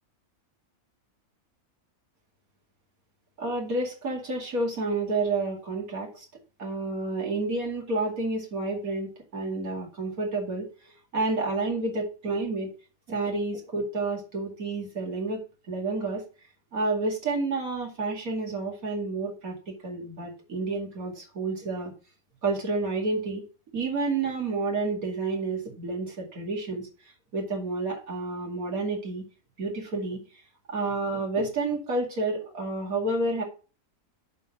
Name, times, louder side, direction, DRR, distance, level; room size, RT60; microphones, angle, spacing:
voice 1, 3.4-6.2 6.6-12.7 13.1-15.4 15.7-16.2 16.7-21.9 22.4-23.4 23.7-26.8 27.3-29.2 29.6-30.2 30.7-33.4, right 3 dB, 80° right, 0 dB, 2.8 m, -30 dB
11.0 x 3.8 x 5.7 m, 0.35 s
omnidirectional pair, 1.5 m